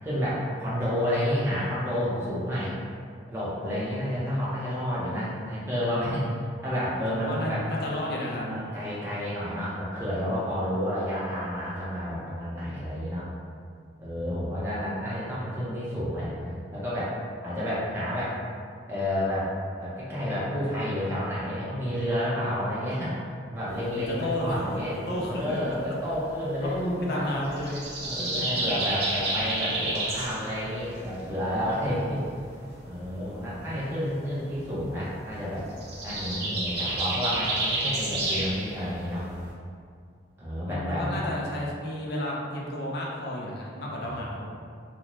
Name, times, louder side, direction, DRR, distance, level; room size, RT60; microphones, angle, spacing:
voice 1, 0.0-2.7 3.3-7.6 8.3-13.3 14.0-17.2 17.4-18.4 18.9-19.5 19.8-27.5 28.0-32.2 32.9-35.7 36.0-39.3 40.4-41.3 44.1-44.5, equal, 15° right, -9 dB, 0.6 m, -30 dB
voice 2, 7.1-8.5 23.9-24.6 24.9-25.8 26.6-28.5 36.0-36.6 40.6-44.5, left 1 dB, 55° left, -3 dB, 0.4 m, -32 dB
sound 1, 23.7-39.5, right 2 dB, 55° right, 0.6 m, -32 dB
2.5 x 2.1 x 2.9 m, 2.2 s
head